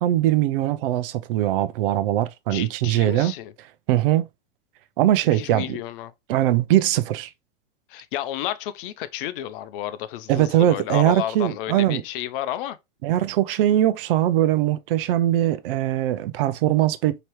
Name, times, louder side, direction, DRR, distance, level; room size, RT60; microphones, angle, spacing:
voice 1, 0.0-3.3 3.9-4.3 5.0-5.8 6.3-7.3 10.3-12.0 13.0-17.2, right 13 dB, 60° right, 0.6 m, -21 dB
voice 2, 2.5-3.5 5.3-6.1 7.9-12.8, left 12 dB, 60° left, 0.7 m, -31 dB
4.5 x 3.0 x 3.1 m
hypercardioid pair, 115°, 31 cm